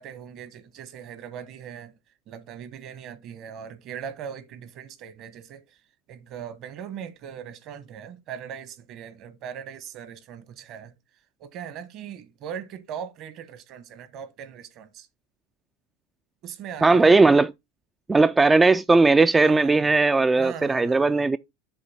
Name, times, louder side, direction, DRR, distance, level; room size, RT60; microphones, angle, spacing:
voice 1, 0.0-1.9 2.3-5.6 6.1-10.9 11.4-15.1 16.4-17.2 19.4-19.9 20.4-21.3, right 8 dB, 50° right, 1.2 m, -39 dB
voice 2, 16.8-17.5 18.1-21.4, right 3 dB, 15° right, 0.3 m, -18 dB
7.5 x 2.7 x 5.6 m
hypercardioid pair, 90°, 0 cm